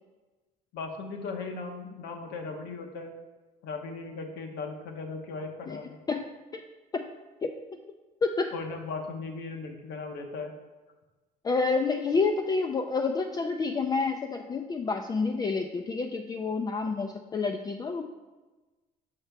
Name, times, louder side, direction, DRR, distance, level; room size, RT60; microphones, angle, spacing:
voice 1, 0.7-3.1 3.6-6.0 8.5-10.5, left 4 dB, 85° left, 4 dB, 0.9 m, -37 dB
voice 2, 11.4-18.0, left 4 dB, 25° left, 3 dB, 0.4 m, -28 dB
5.8 x 5.6 x 3.4 m, 1.2 s
cardioid pair, 110°, 17 cm